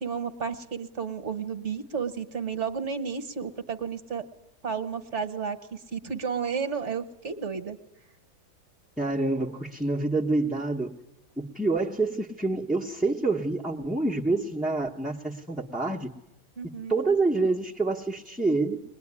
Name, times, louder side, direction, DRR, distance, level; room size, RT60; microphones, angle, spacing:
voice 1, 0.0-4.2 4.6-7.8 16.6-16.9, right 6 dB, 50° right, 10 dB, 1.4 m, -32 dB
voice 2, 9.0-11.0 11.4-16.1 16.9-18.8, right 3 dB, ahead, -5 dB, 0.7 m, -27 dB
21.5 x 21.0 x 9.7 m, 0.89 s
omnidirectional pair, 1.7 m